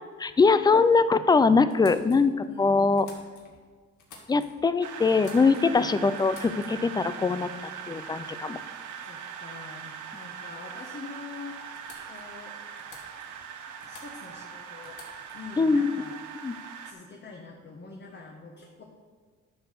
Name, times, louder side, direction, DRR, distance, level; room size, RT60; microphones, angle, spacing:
voice 1, 0.2-3.1 4.3-8.6 15.6-15.9 16.4-16.5, left 4 dB, 15° left, 13 dB, 0.4 m, -22 dB
sound 1, 1.7-3.6 4.0-4.7 5.0-5.8 6.1-7.0 8.0-8.2 8.5-8.9 10.9-11.0 11.2-11.3 11.7-12.4 12.8-13.5 13.8-14.4 14.8-15.5, left 3 dB, 80° left, 1.9 m, -51 dB
voice 2, 2.5-3.0 5.6-5.9 9.0-11.7 12.1-12.6 13.8-15.0 15.3-16.2 16.8-18.8, left 4 dB, 35° left, 0 dB, 1.3 m, -45 dB
sound 2, 4.8-16.9, right 7 dB, 80° right, 1.0 m, -41 dB
11.0 x 4.1 x 6.6 m, 1.5 s
cardioid pair, 90°, 30 cm